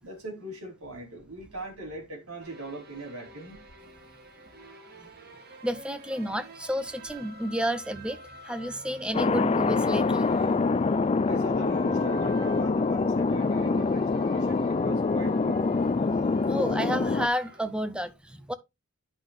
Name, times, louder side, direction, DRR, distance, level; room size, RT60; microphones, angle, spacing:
voice 1, 0.0-3.6 11.2-15.6, right 2 dB, 90° right, 4.4 m, -40 dB
sound 1, 2.4-17.6, right 3 dB, 45° right, 1.7 m, -49 dB
voice 2, 5.6-10.3 16.1-16.2 16.5-18.5, equal, 5° right, 0.7 m, -31 dB
Thunder, 9.1-17.3, left 4 dB, 30° left, 0.3 m, -25 dB
10.0 x 5.8 x 3.2 m
head